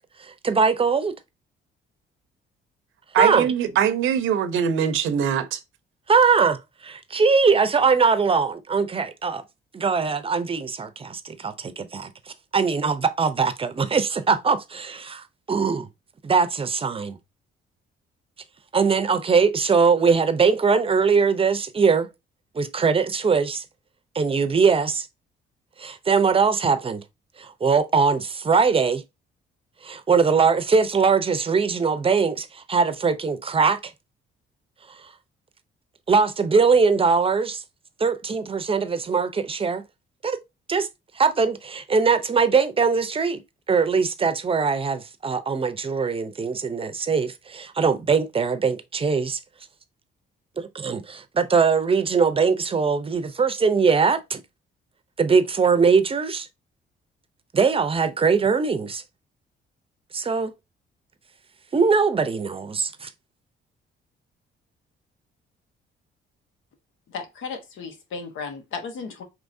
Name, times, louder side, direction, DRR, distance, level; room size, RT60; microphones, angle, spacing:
voice 1, 0.2-1.1 3.2-3.5 6.1-9.4 9.7-15.9 16.2-17.2 18.7-22.1 22.5-23.6 24.1-25.1 25.8-27.0 27.4-29.0 29.8-33.9 34.9-35.1 36.1-37.6 38.0-39.8 40.2-40.4 40.7-40.9 41.1-43.4 43.7-49.4 50.6-54.4 55.2-56.5 57.5-59.0 60.1-60.5 61.7-63.1, right 5 dB, 30° right, 0.6 m, -21 dB
voice 2, 3.1-5.6, right 8 dB, 80° right, 0.7 m, -22 dB
voice 3, 67.1-69.2, left 5 dB, 80° left, 1.1 m, -35 dB
4.6 x 3.0 x 2.6 m
cardioid pair, 90°, 20 cm